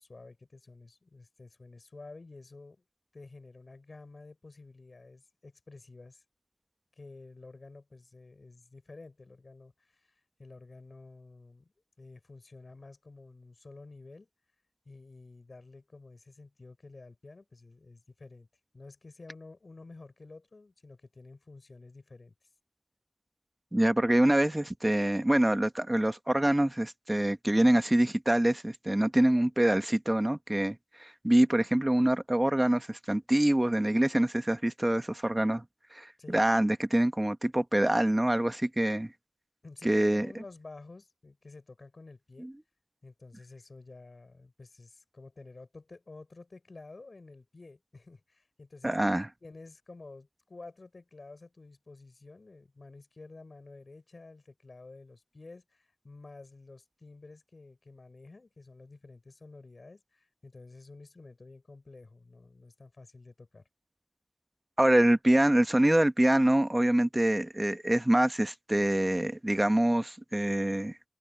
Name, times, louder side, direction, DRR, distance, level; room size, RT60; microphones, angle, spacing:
voice 1, 0.0-2.8 3.1-6.2 7.0-10.1 10.4-14.3 14.9-18.5 18.7-22.3 36.2-36.4 39.6-42.5 43.0-49.0 49.4-63.6, left 3 dB, 90° left, 5.6 m, -51 dB
voice 2, 23.7-35.6 35.9-39.1 39.8-40.3 42.4-42.5 48.8-49.3 64.8-71.0, right 1 dB, 25° right, 1.1 m, -25 dB
wide cardioid pair, 60°, 0 cm